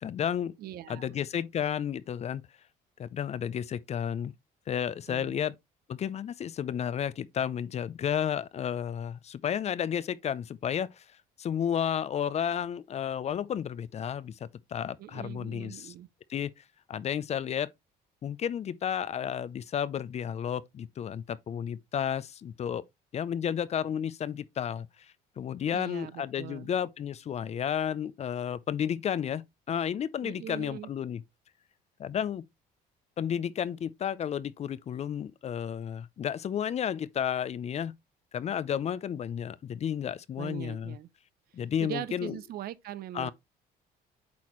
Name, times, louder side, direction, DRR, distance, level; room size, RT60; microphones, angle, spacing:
voice 1, 0.0-0.5 0.9-2.4 3.0-4.3 4.7-5.5 5.9-11.0 11.4-15.9 16.3-17.7 18.2-22.8 23.1-31.2 32.0-32.4 33.2-37.9 38.3-41.0 41.5-42.4 43.1-43.3, left 9 dB, 40° left, 0.5 m, -32 dB
voice 2, 0.6-1.1 5.1-5.6 15.0-16.1 25.7-26.7 30.2-30.9 40.4-41.1 41.8-43.3, right 12 dB, 65° right, 0.7 m, -41 dB
8.4 x 4.2 x 3.0 m
cardioid pair, 110°, 17 cm